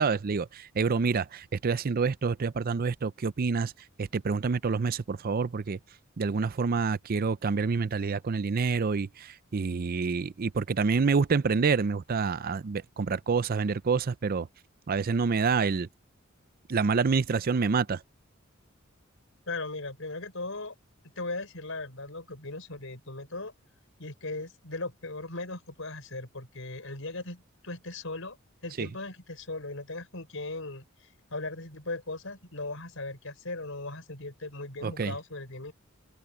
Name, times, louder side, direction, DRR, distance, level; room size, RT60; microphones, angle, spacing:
voice 1, 0.0-3.7 4.0-5.8 6.2-14.5 14.9-15.9 16.7-18.0 28.8-28.9 34.8-35.1, right 5 dB, 45° right, 0.5 m, -27 dB
voice 2, 19.5-20.7 21.2-23.5 24.0-30.8 31.3-35.7, left 2 dB, 70° left, 6.3 m, -38 dB
open air
head